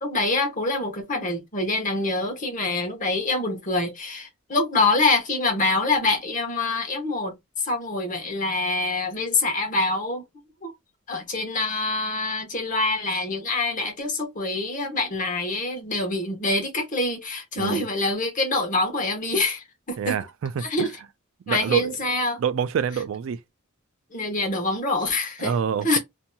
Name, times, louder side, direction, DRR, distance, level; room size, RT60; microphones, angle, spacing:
voice 1, 0.0-10.2 10.6-10.7 11.1-20.1 20.6-20.9 21.5-22.4 24.1-25.5 25.8-26.0, left 2 dB, 40° left, 0.9 m, -25 dB
voice 2, 17.6-17.9 20.0-20.9 21.5-21.9 22.4-23.4 25.4-26.0, right 7 dB, 65° right, 0.3 m, -26 dB
2.8 x 2.6 x 2.2 m
head